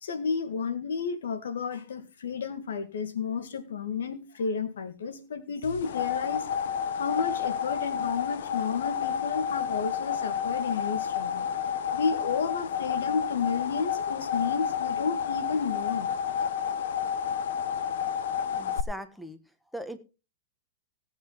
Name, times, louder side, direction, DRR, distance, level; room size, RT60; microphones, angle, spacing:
voice 1, 0.0-6.5 6.9-11.5 11.9-16.1, left 5 dB, 90° left, 2.2 m, -32 dB
sound 1, 5.6-18.8, left 8 dB, 70° left, 1.0 m, -30 dB
voice 2, 18.5-19.4 19.7-20.0, equal, ahead, 1.4 m, -39 dB
17.5 x 8.8 x 4.1 m
hypercardioid pair, 145°, 0 cm